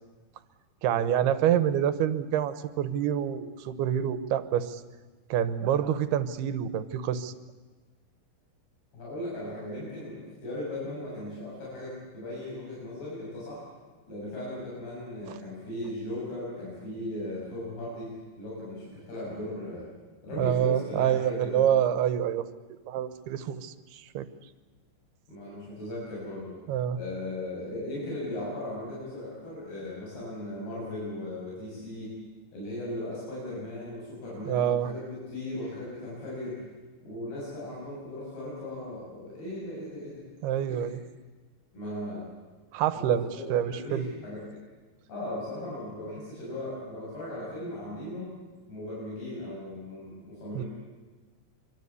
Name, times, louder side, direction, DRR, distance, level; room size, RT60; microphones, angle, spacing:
voice 1, 0.8-4.8 5.3-7.3 15.3-15.4 20.4-22.5 22.9-24.3 26.7-27.0 34.5-34.9 40.4-41.0 42.7-44.1 50.5-50.6, right 10 dB, 85° right, 13 dB, 3.0 m, -27 dB
voice 2, 8.9-13.6 14.1-19.9 20.2-21.6 25.3-26.5 27.0-32.1 32.5-36.6 37.0-40.3 40.7-40.9 41.7-42.3 42.9-44.4 45.1-48.3 48.7-50.7, left 1 dB, 80° left, -6 dB, 9.2 m, -37 dB
25.0 x 24.0 x 8.3 m, 1.3 s
omnidirectional pair, 4.5 m